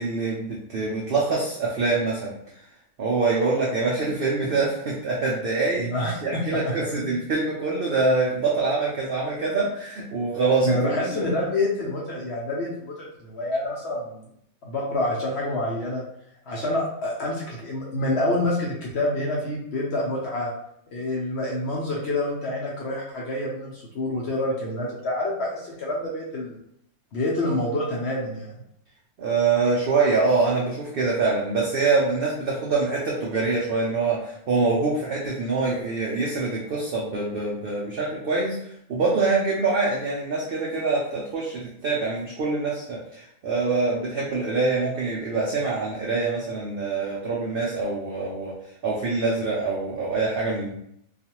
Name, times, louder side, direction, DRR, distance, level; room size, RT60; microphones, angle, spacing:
voice 1, 0.0-2.3 3.0-5.9 6.2-11.2 29.2-38.6 38.9-48.5 48.8-50.7, right 3 dB, 75° right, -4 dB, 0.5 m, -25 dB
voice 2, 5.8-7.1 10.6-14.2 14.6-16.0 16.5-20.5 20.9-26.6 27.1-28.5, left 1 dB, 60° left, -4 dB, 0.7 m, -27 dB
2.4 x 2.4 x 2.8 m, 0.73 s
omnidirectional pair, 1.5 m